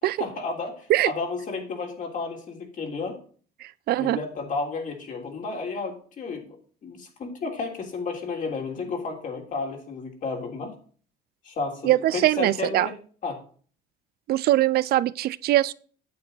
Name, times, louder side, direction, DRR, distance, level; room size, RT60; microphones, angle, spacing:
voice 1, 0.0-3.2 3.9-6.6 6.8-10.7 11.4-12.9 13.2-13.4, left 4 dB, 50° left, 3.3 m, -32 dB
voice 2, 3.6-4.2 11.8-12.9 14.3-15.7, right 15 dB, 65° right, 0.5 m, -22 dB
9.4 x 8.2 x 3.9 m
cardioid pair, 110°, 17 cm